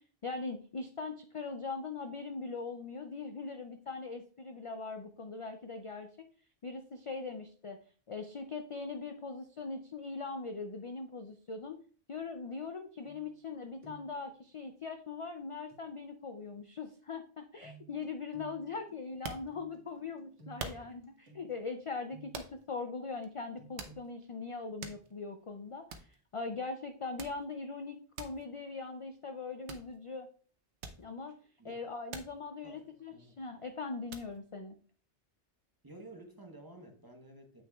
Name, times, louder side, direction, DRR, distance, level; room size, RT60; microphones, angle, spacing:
voice 1, 0.0-6.3 6.6-7.8 8.1-11.8 12.1-30.3 31.0-31.4 31.6-34.7, left 4 dB, 55° left, 7 dB, 0.3 m, -41 dB
sound 1, 13.0-13.5 13.8-14.2 15.7-15.8 17.6-22.6 23.6-24.0, right 6 dB, 55° right, 2.0 m, -56 dB
sound 2, 19.0-20.0 20.6-21.2 22.3-22.8 23.2-23.3 23.8-24.3 24.6-25.4 25.6-25.7 25.9-26.2 27.2-27.5 28.2-28.4 29.7-30.0 30.8-31.4 32.1-32.4 32.8-33.5 34.1-34.4, right 5 dB, 90° right, 1.0 m, -45 dB
voice 2, 32.6-33.4 35.8-37.6, right 2 dB, 20° right, 2 dB, 0.9 m, -52 dB
7.9 x 6.0 x 2.3 m, 0.43 s
omnidirectional pair, 1.1 m